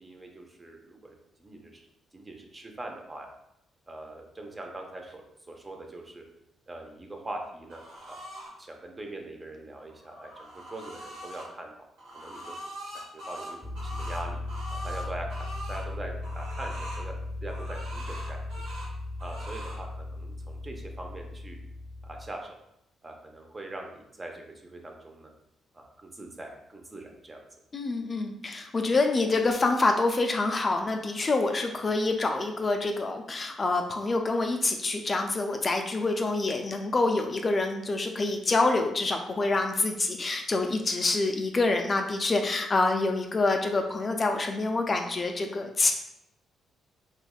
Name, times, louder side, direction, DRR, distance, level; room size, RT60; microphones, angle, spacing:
voice 1, 0.0-1.9 2.1-3.3 3.9-6.2 6.7-8.2 8.6-11.7 12.1-12.6 12.9-14.4 14.7-17.1 17.4-18.7 19.2-21.6 22.0-22.6 23.0-25.3 25.7-27.4, right 2 dB, 25° right, 2 dB, 0.5 m, -42 dB
sound 1, 7.7-8.5 9.9-11.5 12.0-15.8 16.2-17.1 17.5-18.9 19.2-19.8, equal, 90° right, 1.1 m, -42 dB
sound 2, 13.6-22.3, left 2 dB, 10° left, 0.8 m, -37 dB
voice 2, 27.7-45.9, left 3 dB, 35° left, 4 dB, 0.3 m, -26 dB
3.3 x 3.0 x 2.3 m, 0.82 s
cardioid pair, 90°, 0 cm